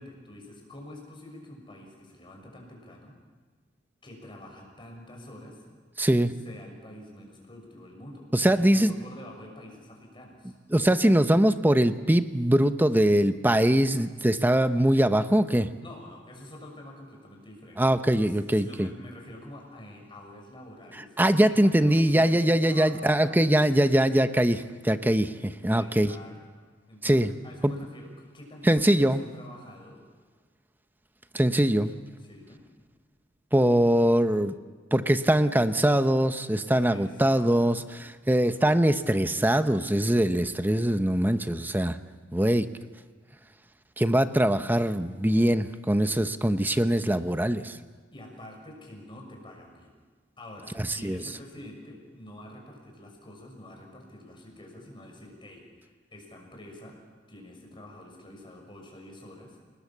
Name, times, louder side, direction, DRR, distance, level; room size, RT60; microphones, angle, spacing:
voice 1, 0.0-3.1 4.0-5.6 6.4-10.5 15.8-17.8 18.3-23.4 25.7-26.3 26.9-30.0 32.2-32.6 36.9-37.9 48.1-49.9 50.4-59.6, left 1 dB, 25° left, 1 dB, 6.5 m, -47 dB
voice 2, 6.0-6.3 8.3-8.9 10.7-15.7 17.8-18.9 21.2-26.1 27.0-27.3 27.6-27.7 28.6-29.2 31.3-31.9 33.5-34.5 34.9-42.0 42.3-42.7 44.0-47.8 50.8-51.2, right 1 dB, 10° right, 10 dB, 0.8 m, -22 dB
29.0 x 20.0 x 7.4 m, 1.5 s
head